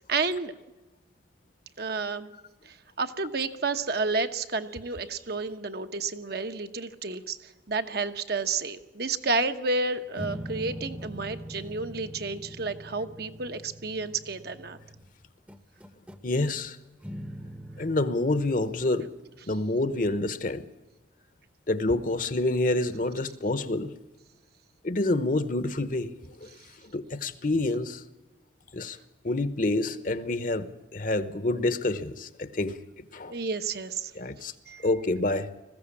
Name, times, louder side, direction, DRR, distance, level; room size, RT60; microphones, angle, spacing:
voice 1, 0.1-0.5 1.8-2.3 2.7-7.4 7.7-14.8 33.3-34.1 34.7-34.8, right 3 dB, 55° right, 1.0 m, -31 dB
sound 1, 10.2-15.1 15.5-16.3 17.0-18.1, equal, 5° right, 0.9 m, -42 dB
voice 2, 16.2-16.8 17.8-19.2 19.4-20.7 21.7-23.9 24.8-26.5 26.9-28.0 28.7-29.0 29.2-33.4 34.1-34.5 34.8-35.5, left 2 dB, 45° left, 1.0 m, -28 dB
20.5 x 15.5 x 8.5 m
head